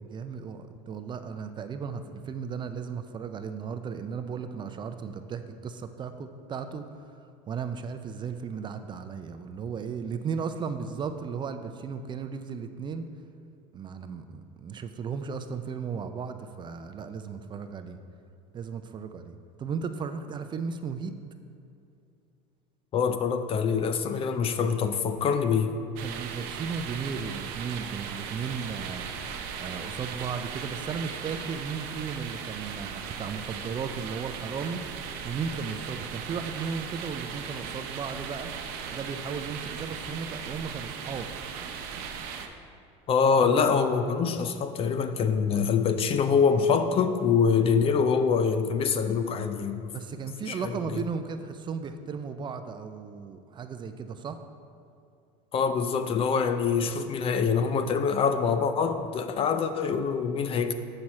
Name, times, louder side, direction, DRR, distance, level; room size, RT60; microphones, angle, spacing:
voice 1, 0.0-6.9 7.5-13.1 13.7-18.0 18.5-21.2 26.0-29.1 29.6-34.8 35.2-38.5 38.9-41.3 49.9-54.4, right 6 dB, 30° right, 8 dB, 0.4 m, -35 dB
voice 2, 22.9-25.7 43.1-49.9 50.4-51.0 55.5-60.7, left 6 dB, 35° left, 9 dB, 0.5 m, -25 dB
sound 1, 26.0-42.5, right 7 dB, 70° right, 0.7 m, -38 dB
7.7 x 5.9 x 4.2 m, 2.5 s
supercardioid pair, 110°, 16 cm